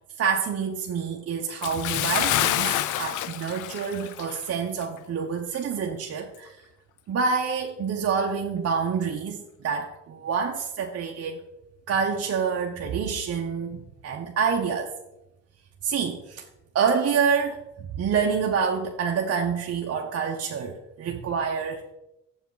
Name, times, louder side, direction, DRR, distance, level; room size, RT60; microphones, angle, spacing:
voice 1, 0.2-6.6 7.1-11.4 11.9-14.9 15.8-16.4 16.7-21.9, right 6 dB, 55° right, 1 dB, 0.8 m, -27 dB
Bathtub (filling or washing) / Splash splatter, 1.6-4.5 4.8-5.0 5.5-5.6, left 12 dB, 80° left, 0.5 m, -27 dB
7.2 x 7.1 x 3.9 m, 0.91 s
cardioid pair, 90°, 30 cm